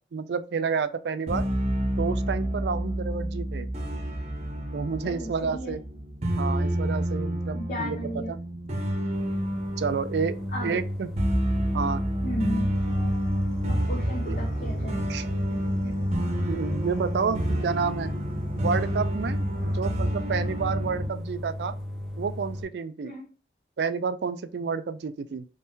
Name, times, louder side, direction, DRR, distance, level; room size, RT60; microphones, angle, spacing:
voice 1, 0.1-1.4 2.0-3.7 4.7-5.8 6.4-8.4 9.8-11.1 11.7-12.0 14.3-14.4 15.1-15.3 15.8-16.0 16.5-18.1 18.6-21.7 22.2-23.1 23.8-25.5, right 5 dB, 70° right, 0.4 m, -30 dB
sound 1, 1.3-21.1, equal, 40° right, 0.8 m, -29 dB
voice 2, 5.0-5.8 7.5-8.3 10.5-10.8 12.2-12.8 13.7-15.0 23.0-23.2, equal, 50° left, 0.8 m, -34 dB
sound 2, 9.1-22.6, left 1 dB, ahead, 0.9 m, -36 dB
sound 3, 12.7-19.8, right 1 dB, 30° left, 1.5 m, -47 dB
3.6 x 3.1 x 2.7 m
head